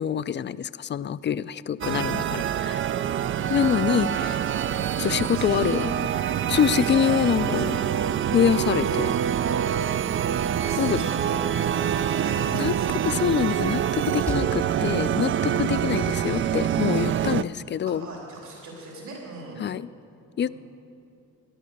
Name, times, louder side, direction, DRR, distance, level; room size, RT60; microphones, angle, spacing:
voice 1, 0.0-2.8 3.5-4.3 5.0-5.9 6.5-7.8 8.3-9.2 10.8-11.0 12.5-12.7 13.0-18.1 19.6-19.9 20.4-20.5, left 9 dB, 40° left, 16 dB, 0.4 m, -25 dB
sound 1, 1.8-17.4, right 10 dB, 40° right, 0.4 m, -25 dB
voice 2, 3.9-4.4 5.3-5.9 6.8-8.1 8.8-9.0 10.6-13.0 17.3-17.5 17.9-19.6 20.4-20.5, right 2 dB, 70° right, -2 dB, 3.7 m, -39 dB
Slam, 10.8-15.5, right 1 dB, 10° right, 0.9 m, -42 dB
19.0 x 11.0 x 6.5 m, 2.6 s
cardioid pair, 90°, 30 cm